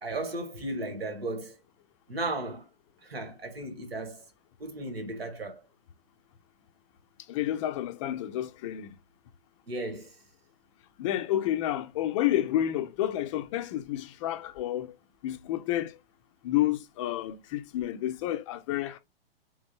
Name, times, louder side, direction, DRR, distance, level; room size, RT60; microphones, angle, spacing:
voice 1, 0.0-1.6 2.1-2.7 3.0-4.2 4.6-5.6 9.7-10.2, right 2 dB, 80° right, 1.5 m, -35 dB
voice 2, 7.3-9.0 11.0-15.0 15.2-16.0 16.4-19.0, left 12 dB, 35° left, 0.4 m, -30 dB
3.6 x 3.1 x 2.9 m
hypercardioid pair, 115°, 30 cm